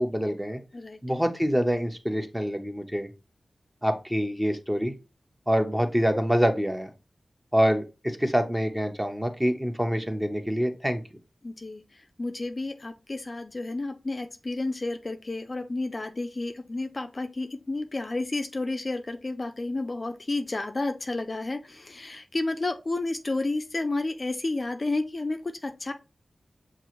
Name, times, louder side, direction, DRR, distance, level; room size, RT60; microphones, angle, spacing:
voice 1, 0.0-0.6 1.0-3.1 3.8-4.9 5.5-6.9 7.5-11.0, equal, 10° right, 6 dB, 0.7 m, -26 dB
voice 2, 11.4-25.9, left 2 dB, 35° left, 6 dB, 0.4 m, -31 dB
6.7 x 2.4 x 3.0 m, 0.30 s
wide cardioid pair, 115°, 0 cm